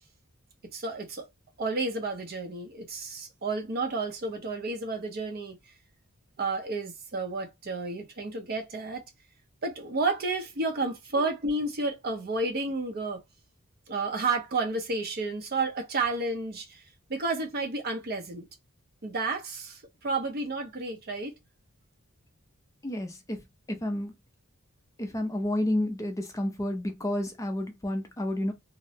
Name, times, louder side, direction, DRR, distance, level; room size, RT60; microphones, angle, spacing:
voice 1, 0.7-1.3 1.6-5.6 6.4-9.1 9.6-13.2 13.9-16.8 17.1-18.5 19.0-21.4, right 3 dB, 45° right, 0.6 m, -31 dB
voice 2, 22.8-23.4 23.7-24.1 25.0-28.5, left 1 dB, 15° left, 0.4 m, -30 dB
2.5 x 2.0 x 2.6 m
head